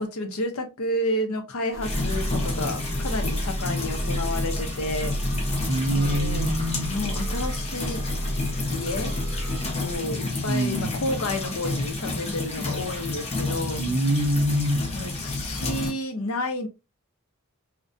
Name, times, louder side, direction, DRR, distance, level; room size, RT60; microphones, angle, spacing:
voice 1, 0.0-5.1 5.9-6.5 6.9-8.0 8.7-9.1 9.8-13.8 14.9-16.7, left 1 dB, 70° left, 0.6 m, -30 dB
sound 1, 1.7-10.0, equal, 15° right, 0.4 m, -31 dB
sound 2, 1.8-15.9, left 2 dB, 30° left, 0.6 m, -30 dB
voice 2, 5.7-6.9 10.5-10.9 13.8-14.8, equal, 75° right, 0.6 m, -24 dB
2.4 x 2.2 x 2.5 m
head